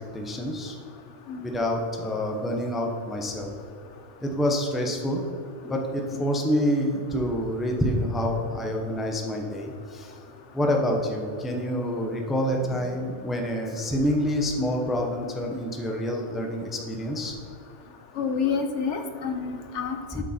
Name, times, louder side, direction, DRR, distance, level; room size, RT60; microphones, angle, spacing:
voice 1, 0.1-0.8 1.4-3.5 4.2-5.2 5.6-10.1 10.5-17.3 20.1-20.2, equal, ahead, 1 dB, 0.7 m, -27 dB
voice 2, 18.2-20.2, left 6 dB, 75° left, 7 dB, 1.1 m, -29 dB
8.3 x 6.5 x 4.3 m, 2.4 s
omnidirectional pair, 1.2 m